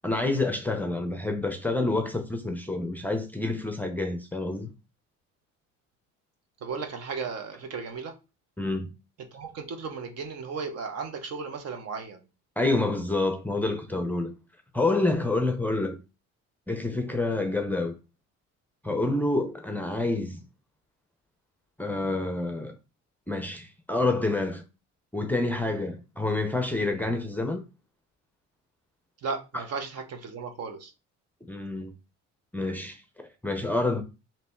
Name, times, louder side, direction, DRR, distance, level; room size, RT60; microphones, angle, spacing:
voice 1, 0.0-4.7 8.6-8.9 12.6-14.3 14.7-16.0 16.7-18.0 18.8-20.4 21.8-22.7 23.3-24.6 25.1-27.6 29.5-29.6 31.5-31.9 32.5-34.0, left 2 dB, 5° left, 0.6 m, -28 dB
voice 2, 6.6-8.1 9.3-12.2 29.2-30.9, right 5 dB, 60° right, 1.0 m, -35 dB
3.3 x 3.0 x 4.3 m
cardioid pair, 115°, 29 cm